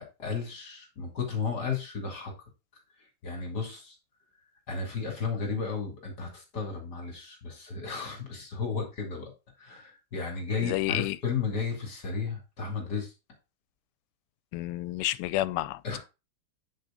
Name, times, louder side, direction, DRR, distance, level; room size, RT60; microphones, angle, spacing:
voice 1, 0.0-2.3 3.2-4.0 4.7-9.3 9.6-13.1 15.8-16.0, left 5 dB, 50° left, 3.1 m, -33 dB
voice 2, 10.6-11.2 14.5-16.0, left 16 dB, 85° left, 1.5 m, -30 dB
9.3 x 5.0 x 3.8 m
omnidirectional pair, 2.4 m